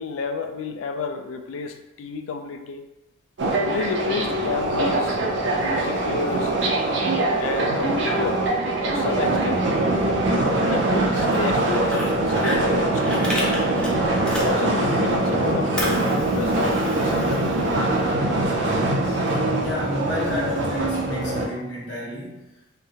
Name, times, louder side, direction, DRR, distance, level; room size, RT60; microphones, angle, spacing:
voice 1, 0.0-2.9 3.7-5.2 5.6-6.5 7.4-8.5 8.9-9.7 10.5-13.1 14.3-17.4 19.1-19.2, left 4 dB, 85° left, 7 dB, 0.3 m, -31 dB
sound 1, 3.4-21.5, right 2 dB, 65° right, 0.4 m, -22 dB
Fire, 11.0-15.0 15.3-18.1, equal, 5° left, 0.4 m, -33 dB
voice 2, 19.6-22.4, left 1 dB, 70° left, -6 dB, 0.7 m, -31 dB
2.7 x 2.1 x 2.7 m, 0.97 s
head